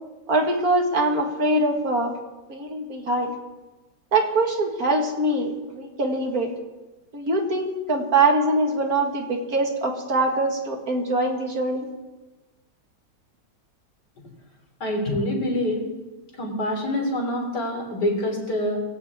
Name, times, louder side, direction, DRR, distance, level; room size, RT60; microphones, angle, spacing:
voice 1, 0.3-2.1 2.5-3.3 4.1-6.5 7.1-11.9, right 2 dB, 55° right, 2 dB, 2.3 m, -23 dB
voice 2, 14.8-15.9 16.4-18.8, left 1 dB, 65° left, 1 dB, 4.0 m, -26 dB
21.5 x 16.5 x 3.7 m, 1.1 s
omnidirectional pair, 1.9 m